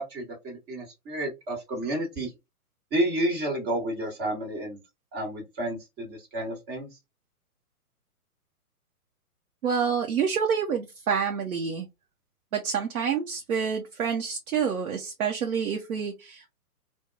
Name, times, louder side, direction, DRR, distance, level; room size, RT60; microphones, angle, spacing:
voice 1, 0.0-2.3 2.9-4.8 5.1-6.9, right 1 dB, 20° right, 1.3 m, -30 dB
voice 2, 9.6-11.9 12.5-16.5, right 6 dB, 65° right, 0.8 m, -28 dB
2.8 x 2.2 x 2.4 m
figure-of-eight pair, 120°, 45 cm